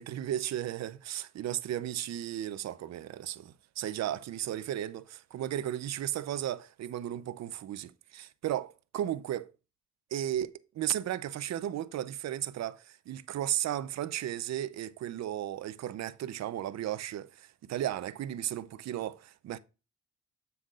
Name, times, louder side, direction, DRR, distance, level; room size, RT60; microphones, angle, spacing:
voice 1, 0.0-8.7 8.9-9.5 10.1-19.6, right 12 dB, 60° right, 0.6 m, -35 dB
7.4 x 7.1 x 2.4 m
cardioid pair, 90°, 30 cm